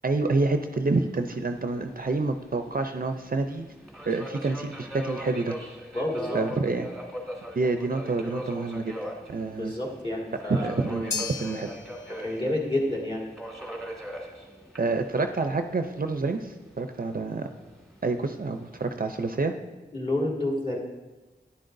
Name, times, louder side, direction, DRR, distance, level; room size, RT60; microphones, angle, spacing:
voice 1, 0.0-3.7 4.1-5.6 6.3-6.9 7.5-8.9 9.3-9.7 10.5-11.7 14.8-17.5 18.0-19.5, right 3 dB, 50° right, 6 dB, 0.5 m, -28 dB
Subway metro underground, 0.9-19.3, equal, ahead, 1.7 m, -41 dB
voice 2, 5.9-6.4 9.6-10.7 12.2-13.3 19.9-20.8, left 1 dB, 30° left, -2 dB, 2.1 m, -29 dB
sound 1, 11.1-19.5, left 5 dB, 80° left, 0.6 m, -42 dB
11.5 x 10.0 x 2.6 m, 1.2 s
wide cardioid pair, 70°, 19 cm